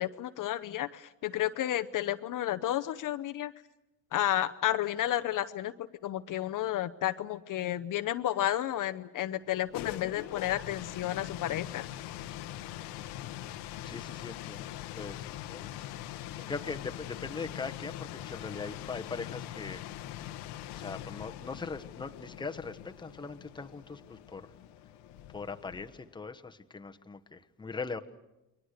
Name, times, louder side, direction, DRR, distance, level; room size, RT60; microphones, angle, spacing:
voice 1, 0.0-3.5 4.1-11.9, left 12 dB, 55° left, 11 dB, 0.9 m, -32 dB
sound 1, 9.5-26.2, left 13 dB, 85° left, 1.2 m, -42 dB
voice 2, 13.8-15.7 16.5-19.8 20.7-24.5 25.3-28.0, left 4 dB, 10° left, 6 dB, 1.1 m, -40 dB
29.5 x 22.5 x 6.6 m, 0.95 s
cardioid pair, 115°, 39 cm